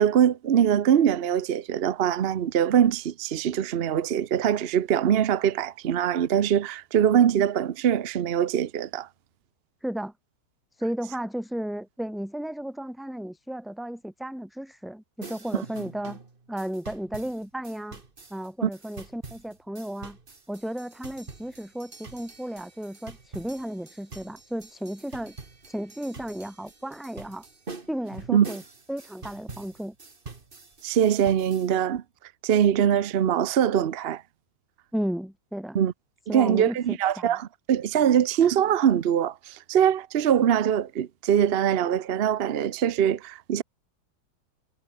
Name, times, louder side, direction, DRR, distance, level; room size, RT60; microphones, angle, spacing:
voice 1, 0.0-9.1 18.6-18.7 28.3-28.5 30.8-32.0 32.4-34.2 35.7-35.9 36.3-43.6, right 9 dB, 60° right, 0.6 m, -23 dB
voice 2, 9.8-10.1 10.8-16.2 16.5-18.0 18.3-20.2 20.5-25.4 25.7-27.5 27.9-28.6 28.9-29.9 34.9-35.8 36.3-37.3, right 1 dB, ahead, 3.1 m, -34 dB
sound 1, 15.2-31.7, right 3 dB, 30° right, 2.1 m, -45 dB
omnidirectional pair, 1.9 m